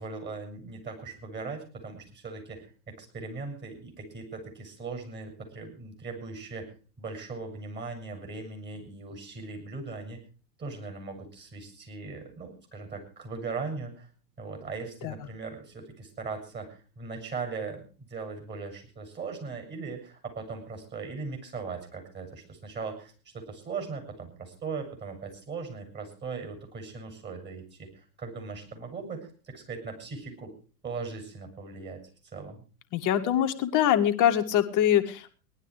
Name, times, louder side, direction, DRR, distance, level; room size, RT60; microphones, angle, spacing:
voice 1, 0.0-6.7 7.0-10.2 10.6-14.1 14.4-30.5 30.8-32.6, right 4 dB, 20° right, 4 dB, 7.4 m, -39 dB
voice 2, 32.9-35.3, left 10 dB, 40° left, 7 dB, 1.9 m, -24 dB
18.5 x 11.5 x 4.9 m, 0.37 s
hypercardioid pair, 105°, 49 cm